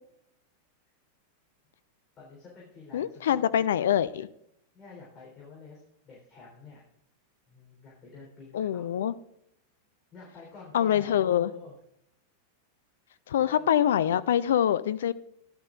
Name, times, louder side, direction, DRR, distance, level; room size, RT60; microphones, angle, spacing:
voice 1, 2.2-3.7 4.7-6.8 7.5-9.1 10.1-11.7 13.0-13.7, left 4 dB, 25° left, -4 dB, 3.7 m, -49 dB
voice 2, 2.9-4.3 8.5-9.1 10.7-11.5 13.3-15.1, left 10 dB, 60° left, 15 dB, 0.4 m, -25 dB
14.5 x 11.0 x 2.5 m, 0.73 s
figure-of-eight pair, 90°, 0 cm